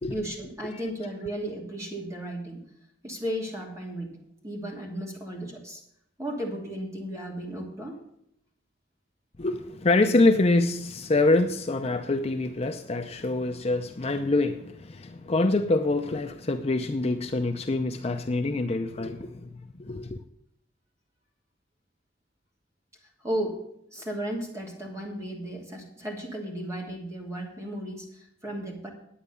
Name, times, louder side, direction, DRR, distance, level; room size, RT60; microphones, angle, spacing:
voice 1, 0.1-2.6 3.0-4.1 4.4-5.8 6.2-8.0 23.2-23.6 23.9-28.9, right 1 dB, 15° right, 2.8 m, -34 dB
voice 2, 9.4-19.5 19.8-20.2, left 2 dB, 35° left, 0.6 m, -25 dB
10.0 x 8.8 x 6.8 m
head